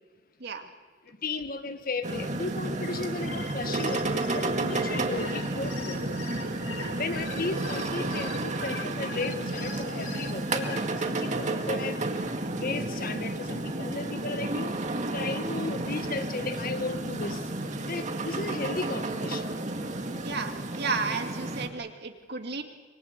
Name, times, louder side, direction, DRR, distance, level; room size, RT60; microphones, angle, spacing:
voice 1, 1.1-6.1 6.9-12.0 12.4-14.8 15.1-17.4 17.8-19.5, left 3 dB, 50° left, 9 dB, 1.5 m, -35 dB
sound 1, 2.0-21.7, right 2 dB, 40° right, 2.1 m, -32 dB
sound 2, 3.0-10.8, left 5 dB, 85° left, 3.3 m, -42 dB
sound 3, 3.5-8.6, right 2 dB, 85° right, 1.6 m, -42 dB
voice 2, 6.7-7.0 12.8-12.9 20.2-22.6, right 4 dB, 60° right, 5 dB, 2.3 m, -33 dB
25.0 x 24.0 x 8.2 m, 1.3 s
head